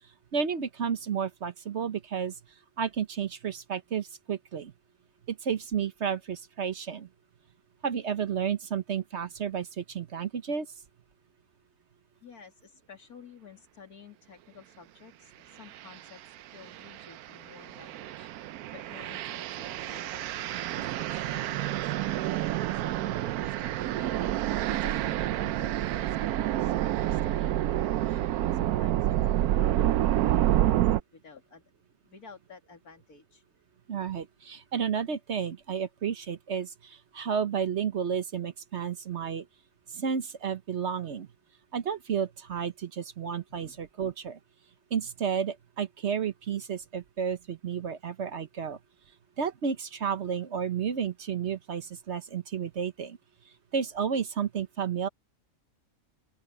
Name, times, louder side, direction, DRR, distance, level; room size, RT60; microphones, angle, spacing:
voice 1, 0.3-2.3 2.8-4.7 5.3-7.1 7.8-10.7 33.9-39.4 39.9-41.3 41.7-44.4 44.9-48.8 49.4-53.2 53.7-55.1, right 7 dB, 55° right, 1.2 m, -32 dB
voice 2, 12.2-24.3 24.7-31.6 32.0-33.4 43.5-43.8, left 6 dB, 90° left, 3.2 m, -52 dB
sound 1, 15.7-16.0 16.6-31.0, right 13 dB, 90° right, 1.1 m, -28 dB
open air
omnidirectional pair, 1.5 m